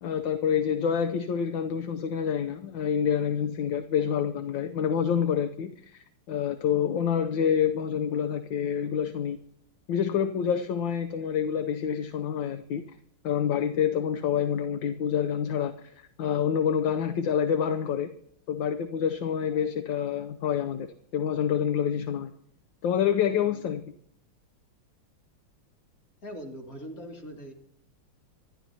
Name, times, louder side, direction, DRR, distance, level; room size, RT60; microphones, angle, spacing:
voice 1, 0.0-9.4 9.9-12.8 13.2-15.9 16.2-18.1 18.5-20.9 21.1-22.3 22.8-23.8, left 8 dB, 70° left, 8 dB, 1.5 m, -27 dB
voice 2, 26.2-27.5, equal, 40° left, 1 dB, 3.0 m, -41 dB
25.5 x 13.0 x 2.9 m, 0.66 s
omnidirectional pair, 2.3 m